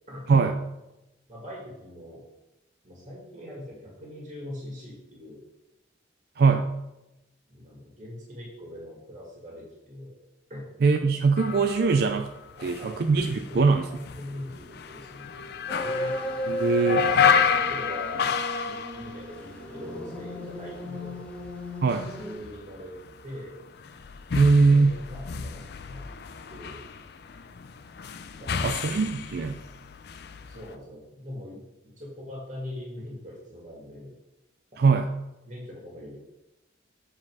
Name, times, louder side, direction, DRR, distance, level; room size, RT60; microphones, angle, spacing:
voice 1, 1.3-2.2 2.8-5.4 7.5-10.2 10.5-10.7 12.6-16.1 17.0-18.2 18.6-21.3 22.1-22.9 23.2-23.6 24.7-26.1 26.5-26.8 28.4-28.8 30.4-34.1 35.4-36.2, left 1 dB, 40° right, -4 dB, 2.1 m, -42 dB
voice 2, 6.4-6.7 10.8-12.3 12.6-13.9 16.5-17.0 21.8-22.1 24.3-25.0 28.6-29.6 34.8-35.1, right 4 dB, 55° right, 7 dB, 0.4 m, -21 dB
sound 1, 11.4-20.2 20.6-30.7, left 7 dB, 60° left, 0.4 m, -31 dB
sound 2, 15.7-22.3, equal, 5° left, 1.0 m, -34 dB
7.6 x 4.9 x 4.7 m, 0.95 s
head